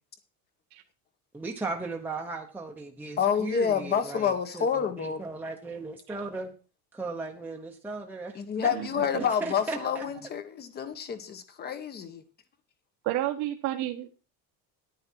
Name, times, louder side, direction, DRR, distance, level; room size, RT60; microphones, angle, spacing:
voice 1, 1.3-6.5 6.9-8.7 9.2-10.1, right 3 dB, 5° right, 1.1 m, -37 dB
voice 2, 3.2-5.2 8.3-12.2, left 7 dB, 30° left, 1.4 m, -28 dB
voice 3, 8.6-9.3 13.0-14.1, right 14 dB, 65° right, 1.4 m, -31 dB
10.5 x 9.6 x 4.5 m
cardioid pair, 165°, 34 cm